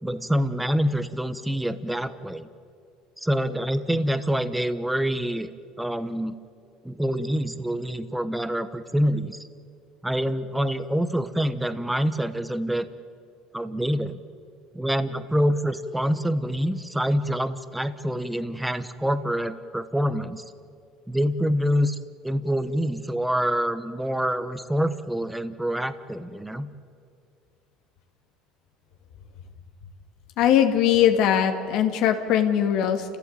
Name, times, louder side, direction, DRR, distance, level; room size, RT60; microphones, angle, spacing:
voice 1, 0.0-2.5 3.2-5.5 5.8-6.3 6.8-9.4 10.0-12.9 13.5-14.2 14.7-20.4 21.1-22.0 22.2-26.7, equal, 5° right, 12 dB, 1.1 m, -26 dB
voice 2, 30.4-33.2, left 9 dB, 65° left, 5 dB, 2.3 m, -21 dB
29.0 x 15.5 x 9.0 m, 2.3 s
cardioid pair, 130°, 0 cm